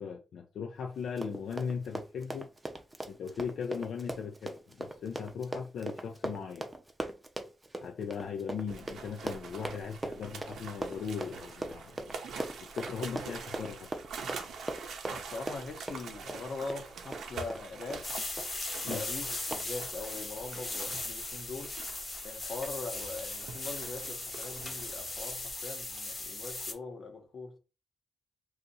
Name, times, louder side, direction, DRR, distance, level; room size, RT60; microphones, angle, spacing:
voice 1, 0.0-2.5 3.1-6.7 7.8-12.2 12.6-14.0 18.9-19.0, left 6 dB, 80° left, 0.4 m, -38 dB
Run, 1.0-17.7 17.9-18.1 18.4-18.6 18.9-19.0 19.5-19.6, right 1 dB, 15° right, 0.5 m, -40 dB
sound 1, 8.7-25.5, right 5 dB, 85° right, 0.6 m, -45 dB
voice 2, 15.2-18.1 18.8-21.7 22.2-27.6, left 3 dB, 60° left, 0.8 m, -42 dB
sound 2, 18.0-26.7, left 2 dB, 30° left, 0.8 m, -38 dB
2.7 x 2.4 x 4.0 m
cardioid pair, 115°, 0 cm